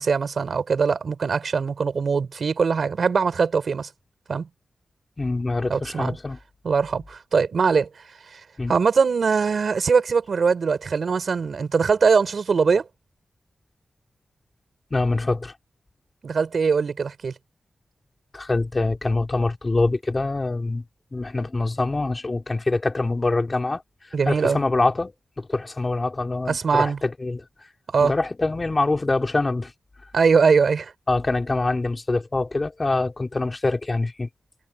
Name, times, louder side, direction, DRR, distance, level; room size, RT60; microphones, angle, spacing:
voice 1, 0.0-3.9 4.3-4.5 5.7-6.2 6.6-7.9 8.3-8.4 8.7-12.9 16.2-17.3 24.1-24.6 26.5-27.0 27.9-28.1 30.1-30.9, right 5 dB, 70° right, 5.2 m, -21 dB
voice 2, 5.2-6.4 8.6-8.7 14.9-15.5 18.3-20.8 21.1-23.8 24.2-27.4 28.0-29.7 31.1-34.3, left 2 dB, 35° left, 3.3 m, -24 dB
cardioid pair, 60°, 0 cm